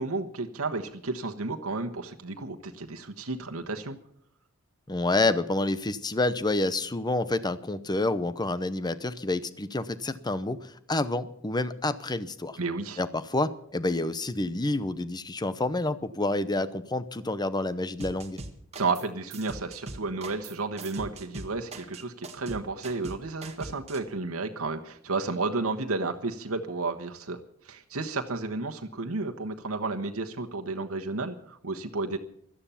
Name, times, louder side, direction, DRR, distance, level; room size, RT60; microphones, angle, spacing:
voice 1, 0.0-4.0 12.6-13.0 18.7-27.4 27.6-32.2, right 3 dB, 80° right, 4 dB, 1.2 m, -32 dB
voice 2, 4.9-12.6 13.0-18.4, left 2 dB, 20° left, 14 dB, 0.8 m, -28 dB
sound 1, 18.0-19.1 19.3-24.0, right 2 dB, 30° right, 1.7 m, -41 dB
17.0 x 12.5 x 5.7 m, 0.69 s
head